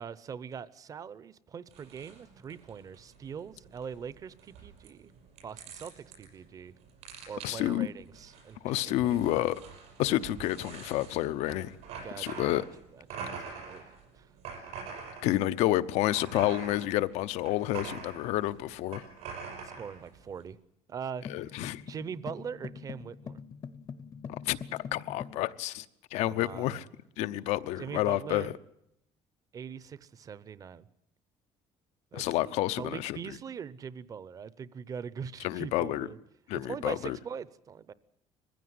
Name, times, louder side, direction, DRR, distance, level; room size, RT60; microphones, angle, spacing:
voice 1, 0.0-5.1 5.4-6.7 7.3-9.5 12.0-12.7 12.9-14.3 19.6-20.6 20.9-21.6 21.9-23.4 26.2-26.9 27.8-28.5 29.5-30.9 32.1-36.2 36.5-37.9, right 7 dB, 30° right, 0.7 m, -42 dB
sound 1, 1.7-20.5, right 5 dB, 75° right, 6.1 m, -45 dB
voice 2, 7.4-7.9 8.6-9.6 10.0-11.7 12.2-12.6 15.2-19.0 21.3-21.8 24.4-24.6 24.9-25.8 26.1-26.8 27.2-28.5 32.1-33.2 35.4-36.1 36.5-37.2, left 15 dB, 85° left, 0.8 m, -29 dB
sound 2, 21.2-25.4, left 6 dB, 35° left, 0.7 m, -44 dB
21.5 x 15.5 x 9.6 m
cardioid pair, 155°, 11 cm